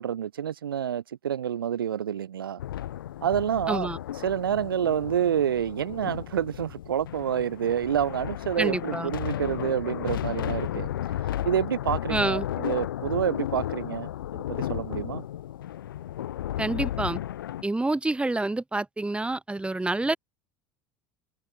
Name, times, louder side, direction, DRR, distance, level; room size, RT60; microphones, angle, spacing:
voice 1, 0.0-2.6 3.2-3.9 4.2-10.9 11.4-15.2, right 9 dB, 75° right, 1.9 m, -28 dB
sound 1, 2.6-17.6, left 12 dB, 70° left, 1.0 m, -34 dB
voice 2, 3.7-4.0 8.6-9.1 12.1-12.5 16.6-17.2 17.6-20.2, right 2 dB, 10° right, 2.8 m, -27 dB
figure-of-eight pair, 70°, 12 cm